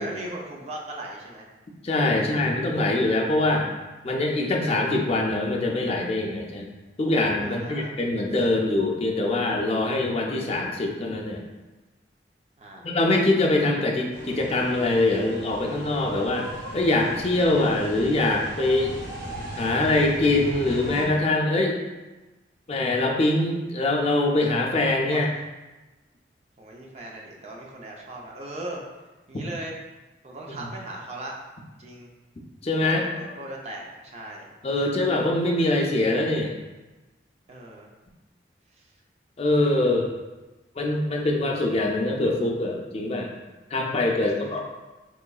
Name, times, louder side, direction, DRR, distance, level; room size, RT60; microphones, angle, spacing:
voice 1, 0.0-1.5 2.1-2.5 7.4-7.9 12.6-13.0 25.1-25.3 26.6-28.8 29.3-29.8 30.2-31.3 31.8-32.1 32.8-34.5 37.5-37.9 38.8-38.9 44.3-44.6, right 1 dB, 35° right, -1 dB, 0.5 m, -38 dB
voice 2, 1.8-3.7 4.0-6.7 7.0-11.4 12.8-16.5 16.7-18.9 19.6-21.8 22.7-25.3 32.6-33.0 34.6-36.5 39.4-40.1 40.8-43.3 43.7-44.6, left 2 dB, 35° left, 0 dB, 0.4 m, -23 dB
sound 1, 14.1-21.0, right 1 dB, 70° right, 1.1 m, -37 dB
3.7 x 3.0 x 2.3 m, 1.1 s
head